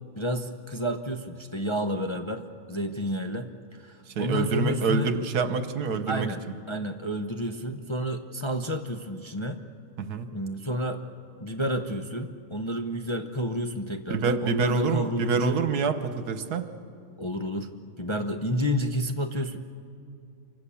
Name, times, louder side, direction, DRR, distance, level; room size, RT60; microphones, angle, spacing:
voice 1, 0.2-5.1 6.1-6.4 6.7-9.6 10.3-11.0 11.4-15.6 17.2-19.6, equal, 25° left, 5 dB, 0.8 m, -30 dB
voice 2, 4.1-6.3 10.0-10.3 14.1-16.7, right 4 dB, 75° right, 10 dB, 1.7 m, -26 dB
27.5 x 25.0 x 7.1 m, 2.6 s
omnidirectional pair, 1.7 m